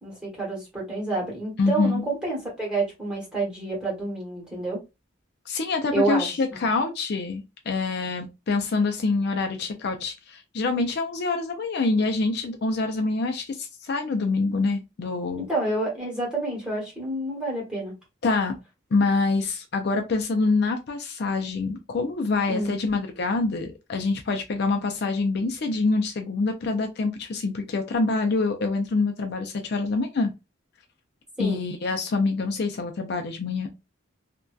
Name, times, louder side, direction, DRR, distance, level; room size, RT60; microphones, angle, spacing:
voice 1, 0.0-4.8 5.9-6.3 15.3-17.9 22.5-22.7 31.4-31.6, right 2 dB, 5° right, 1.2 m, -28 dB
voice 2, 1.6-2.0 5.5-15.5 18.2-18.6 18.9-30.3 31.4-33.7, left 3 dB, 55° left, 0.4 m, -26 dB
2.6 x 2.2 x 2.3 m
head